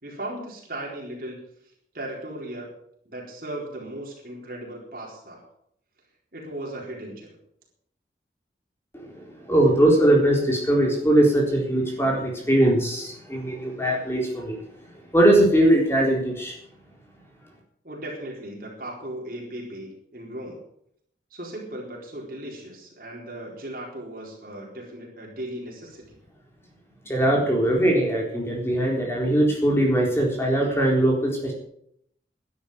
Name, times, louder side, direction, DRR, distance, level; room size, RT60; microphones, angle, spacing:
voice 1, 0.0-1.4 1.9-2.7 3.1-5.5 6.3-7.4 17.8-20.6 21.3-26.2, right 1 dB, 50° right, -2 dB, 4.3 m, -37 dB
voice 2, 9.5-14.6 15.1-16.5 27.1-31.5, right 1 dB, 15° left, -1 dB, 3.9 m, -20 dB
12.0 x 11.0 x 7.3 m, 0.71 s
head